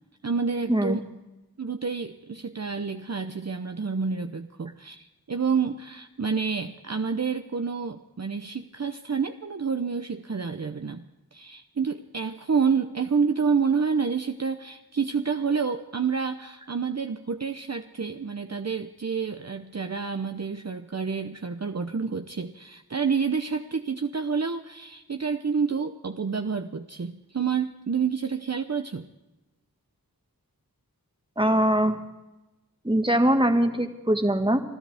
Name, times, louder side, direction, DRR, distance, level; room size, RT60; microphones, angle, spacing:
voice 1, 0.2-1.0 1.6-11.1 11.3-29.1, right 5 dB, 45° right, 6 dB, 0.7 m, -28 dB
voice 2, 31.4-32.0 32.8-34.6, right 1 dB, 15° right, 6 dB, 1.6 m, -22 dB
26.0 x 13.0 x 3.5 m, 1.0 s
wide cardioid pair, 45°, 37 cm